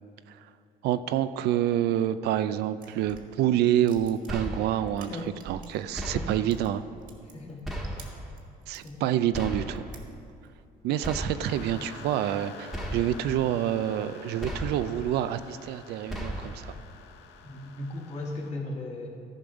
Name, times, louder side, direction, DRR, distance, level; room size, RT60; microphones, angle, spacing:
voice 1, 0.8-6.9 8.7-9.8 10.8-16.8, right 11 dB, 75° right, 12 dB, 0.4 m, -27 dB
sound 1, 2.7-5.9 6.2-9.0 9.4-10.5, right 5 dB, 55° right, 1.6 m, -49 dB
sound 2, 4.3-5.0 6.0-6.7 7.6-8.3 9.3-10.0 11.0-11.7 12.7-13.4 14.4-15.1 16.1-16.8, equal, ahead, 1.4 m, -36 dB
sound 3, 11.4-18.5, left 6 dB, 90° left, 0.8 m, -48 dB
voice 2, 17.4-19.1, left 2 dB, 40° left, -1 dB, 1.9 m, -36 dB
14.0 x 5.4 x 5.0 m, 2.5 s
cardioid pair, 110°, 17 cm